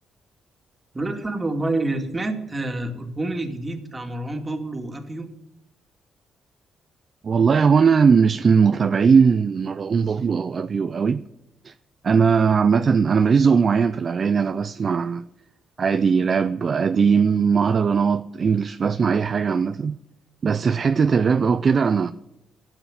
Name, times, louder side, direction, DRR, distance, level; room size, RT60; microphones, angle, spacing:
voice 1, 0.9-5.3, right 2 dB, 20° right, 2.3 m, -28 dB
voice 2, 7.2-11.2 11.6-11.7 12.0-15.2 15.8-20.0 20.4-22.1, right 6 dB, 45° right, 0.5 m, -19 dB
12.0 x 8.0 x 9.0 m
cardioid pair, 90°, 0 cm